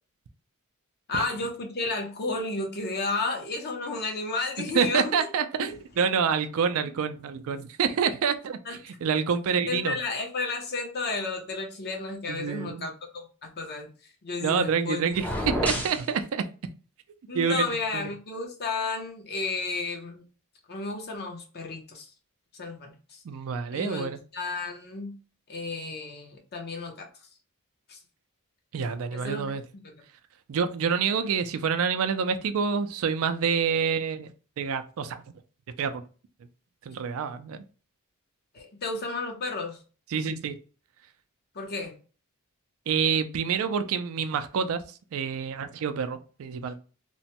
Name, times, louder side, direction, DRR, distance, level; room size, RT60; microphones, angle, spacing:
voice 1, 1.1-5.3 8.7-8.8 9.7-13.9 14.2-15.1 17.3-20.2 20.7-22.1 22.5-23.2 23.7-25.1 25.5-27.1 27.9-28.0 29.1-29.5 38.5-39.8 41.5-42.0, left 3 dB, 50° left, 3 dB, 0.7 m, -32 dB
voice 2, 4.6-10.0 12.3-12.9 14.4-16.5 17.3-17.6 17.9-18.0 23.2-24.2 28.7-29.6 30.5-35.2 35.8-36.0 36.9-37.6 40.1-40.6 42.9-44.8 45.1-46.7, right 6 dB, 65° right, 10 dB, 0.4 m, -27 dB
sound 1, 15.1-16.1, left 1 dB, 5° left, 0.5 m, -29 dB
3.0 x 2.1 x 2.8 m, 0.37 s
head